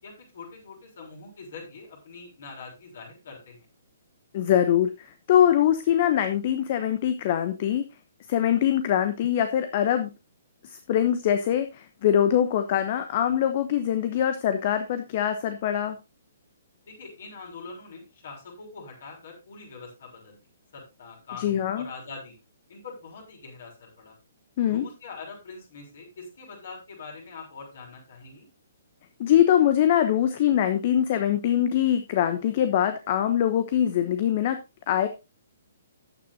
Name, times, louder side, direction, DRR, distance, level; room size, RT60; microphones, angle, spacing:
voice 1, 0.0-3.6 16.9-20.4 20.7-22.3 22.7-24.1 24.6-28.5, left 4 dB, 55° left, 0 dB, 6.4 m, -43 dB
voice 2, 4.3-7.8 8.3-10.1 10.6-16.0 21.4-21.9 24.6-24.9 29.2-34.6 34.9-35.1, left 10 dB, 40° left, 9 dB, 1.0 m, -23 dB
14.0 x 9.5 x 2.7 m, 0.26 s
figure-of-eight pair, 125°, 0 cm